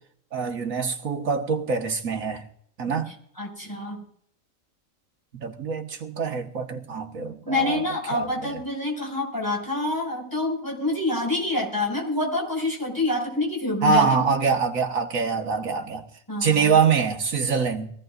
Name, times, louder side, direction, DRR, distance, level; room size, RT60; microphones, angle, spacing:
voice 1, 0.3-2.4 2.8-3.1 5.3-7.8 8.1-8.6 13.8-16.0 16.4-17.9, right 5 dB, 85° right, 1.9 m, -24 dB
voice 2, 3.4-4.0 7.5-14.2 16.3-16.7, left 1 dB, 15° left, 5.5 m, -27 dB
22.5 x 16.5 x 2.5 m
omnidirectional pair, 1.4 m